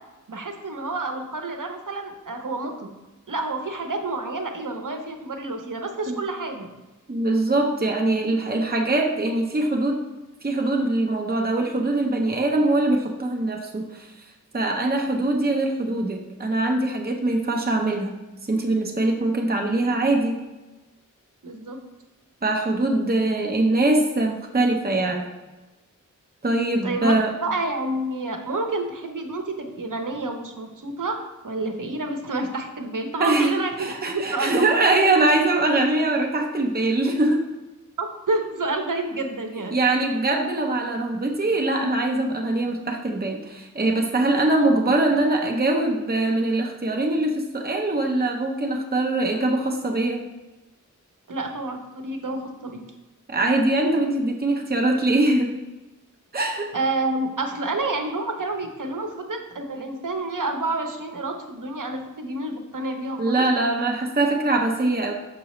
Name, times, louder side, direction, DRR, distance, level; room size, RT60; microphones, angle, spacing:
voice 1, 0.3-2.9 3.3-6.7 21.4-21.8 26.8-27.1 27.4-31.2 31.4-34.6 38.0-39.8 51.3-52.8 56.7-63.4, right 2 dB, 75° right, 4 dB, 0.9 m, -29 dB
voice 2, 7.1-10.0 10.4-14.1 14.5-18.1 18.4-20.4 22.4-25.3 26.4-27.3 33.2-33.5 33.8-37.4 39.7-50.2 53.3-55.5 56.3-56.7 63.2-65.1, right 2 dB, 30° right, 1 dB, 0.8 m, -22 dB
6.1 x 5.9 x 3.1 m, 1.1 s
wide cardioid pair, 60°, 32 cm